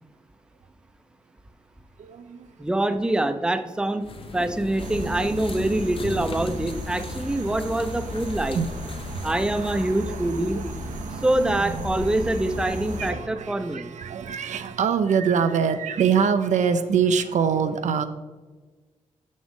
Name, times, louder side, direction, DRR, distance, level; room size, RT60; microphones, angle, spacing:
voice 1, 2.0-2.5 8.5-8.7 9.1-9.3 10.1-10.2 11.4-11.6 12.6-18.1, right 6 dB, 70° right, 9 dB, 0.5 m, -24 dB
voice 2, 2.6-4.0 4.3-8.6 9.2-10.6 11.2-13.9, right 1 dB, 5° right, 9 dB, 0.5 m, -25 dB
sound 1, 4.0-10.0, left 4 dB, 45° left, 0.6 m, -38 dB
sound 2, 4.8-13.1, right 1 dB, 90° right, 0.9 m, -34 dB
6.2 x 6.1 x 3.6 m, 1.3 s
cardioid pair, 70°, 13 cm